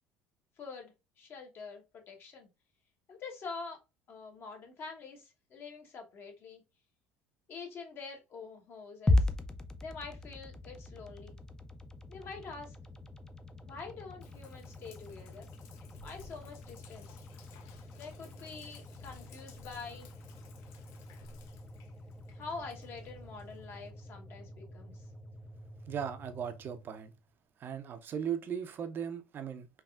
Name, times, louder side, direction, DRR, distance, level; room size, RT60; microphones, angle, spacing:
voice 1, 0.6-2.5 3.1-3.8 4.1-6.6 7.5-9.3 9.8-11.4 12.1-12.8 13.6-15.5 16.0-17.2 17.9-20.1 22.3-25.0, left 4 dB, 50° left, 1.0 m, -46 dB
sound 1, 9.1-27.3, left 2 dB, 15° left, 0.4 m, -39 dB
Sink (filling or washing), 14.2-23.9, left 5 dB, 70° left, 0.5 m, -57 dB
voice 2, 25.9-27.1 27.6-29.7, right 8 dB, 45° right, 0.5 m, -37 dB
3.4 x 2.3 x 2.3 m
supercardioid pair, 80°, 5 cm